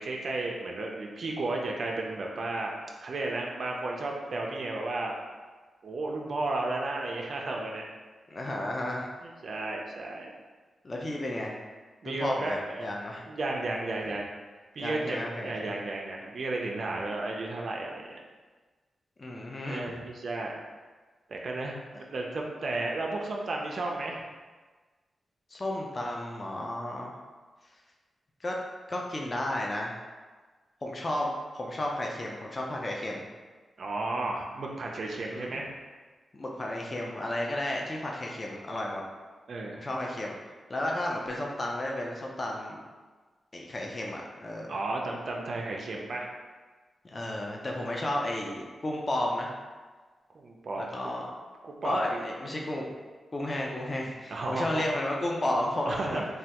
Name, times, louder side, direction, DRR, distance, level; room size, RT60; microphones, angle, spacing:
voice 1, 0.0-2.7 3.0-5.1 5.8-7.8 9.2-10.3 12.0-12.9 13.2-14.3 14.7-18.2 19.6-20.5 21.3-24.2 33.8-35.7 39.5-39.8 44.7-46.3 50.3-51.2 51.6-52.2 54.3-54.9 55.9-56.3, right 2 dB, 50° right, -1 dB, 0.3 m, -33 dB
voice 2, 8.3-9.1 10.8-11.6 12.0-13.2 14.8-15.7 19.2-20.0 25.5-27.1 28.4-28.6 28.9-30.0 30.8-31.3 31.5-33.2 35.3-35.6 36.3-39.0 39.7-40.4 40.7-42.8 43.5-44.8 47.0-49.5 50.8-51.3 51.8-52.9 53.3-56.2, left 1 dB, 30° left, -1 dB, 0.3 m, -33 dB
3.2 x 2.2 x 2.8 m, 1.4 s
wide cardioid pair, 150°, 0 cm